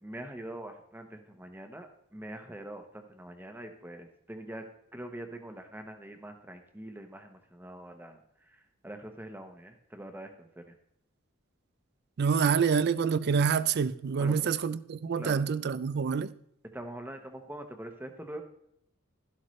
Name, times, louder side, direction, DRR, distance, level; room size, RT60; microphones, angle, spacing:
voice 1, 0.0-4.6 4.9-8.2 8.5-10.7 14.2-14.5 15.2-15.4 16.7-18.4, right 1 dB, 10° right, 0.9 m, -44 dB
voice 2, 12.2-16.3, right 6 dB, 50° right, 0.4 m, -27 dB
12.5 x 11.5 x 3.1 m
head